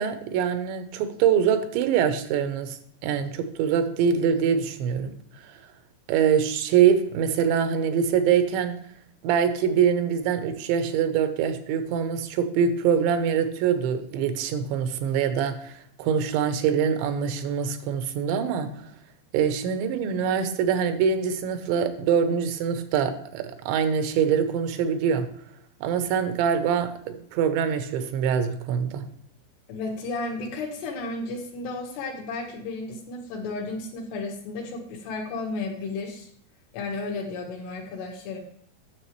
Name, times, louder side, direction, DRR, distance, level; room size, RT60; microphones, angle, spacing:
voice 1, 0.0-5.1 5.4-5.5 6.1-8.8 9.2-18.7 19.3-25.3 25.8-29.0, right 7 dB, 90° right, 9 dB, 3.1 m, -24 dB
voice 2, 29.7-36.3 36.7-38.4, left 3 dB, 75° left, 2 dB, 3.2 m, -33 dB
9.6 x 7.2 x 3.1 m, 0.66 s
omnidirectional pair, 5.0 m